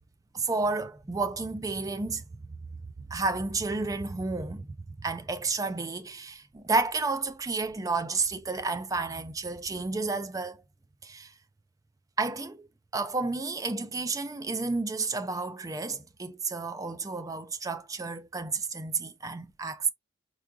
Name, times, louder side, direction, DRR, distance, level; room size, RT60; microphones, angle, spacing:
voice 1, 0.3-2.2 3.1-10.6 11.0-11.3 12.2-12.7 12.9-19.9, right 3 dB, 20° right, 0.4 m, -31 dB
4.8 x 2.3 x 2.5 m
head